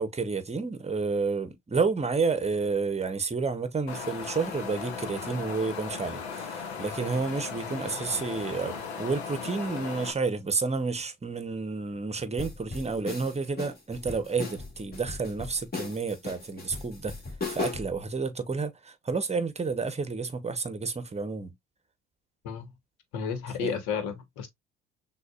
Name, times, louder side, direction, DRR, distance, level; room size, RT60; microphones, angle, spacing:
voice 1, 0.0-17.1 17.5-21.5 23.6-23.8, right 4 dB, 20° right, 1.0 m, -30 dB
Wind, 3.9-10.1, left 6 dB, 85° left, 0.9 m, -37 dB
sound 1, 12.4-18.0, left 4 dB, 30° left, 1.9 m, -37 dB
voice 2, 23.1-24.5, left 6 dB, 70° left, 1.2 m, -32 dB
6.2 x 2.5 x 2.4 m
hypercardioid pair, 60°, 31 cm